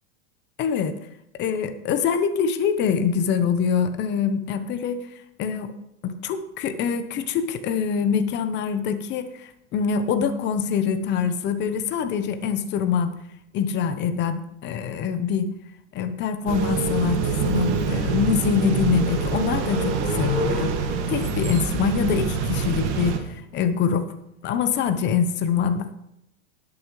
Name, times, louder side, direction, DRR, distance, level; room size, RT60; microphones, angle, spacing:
voice 1, 0.6-0.9 1.4-5.0 5.4-5.7 6.0-13.2 13.5-15.5 15.9-20.7 21.1-24.1 24.4-25.9, left 7 dB, 30° left, 10 dB, 1.0 m, -24 dB
sound 1, 16.5-23.2, right 5 dB, 60° right, 2.1 m, -25 dB
20.0 x 6.8 x 3.2 m, 0.81 s
supercardioid pair, 140°, 38 cm